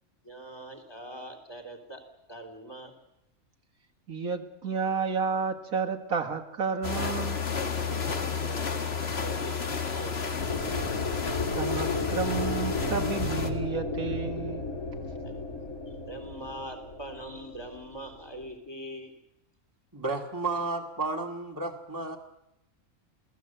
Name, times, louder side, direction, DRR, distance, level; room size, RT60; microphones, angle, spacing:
voice 1, 0.2-2.0 2.3-3.0 8.0-10.7 15.2-15.3 16.1-19.1, right 1 dB, 15° left, 5 dB, 3.7 m, -43 dB
voice 2, 4.1-7.4 11.5-14.6, right 5 dB, 75° right, 3 dB, 2.3 m, -31 dB
sound 1, 6.8-13.5, left 5 dB, 45° left, 1.8 m, -32 dB
sound 2, 10.4-18.5, left 3 dB, 75° left, 3.5 m, -34 dB
voice 3, 19.9-22.2, right 3 dB, 15° right, 1 dB, 2.1 m, -32 dB
28.5 x 18.0 x 8.0 m, 0.88 s
omnidirectional pair, 1.5 m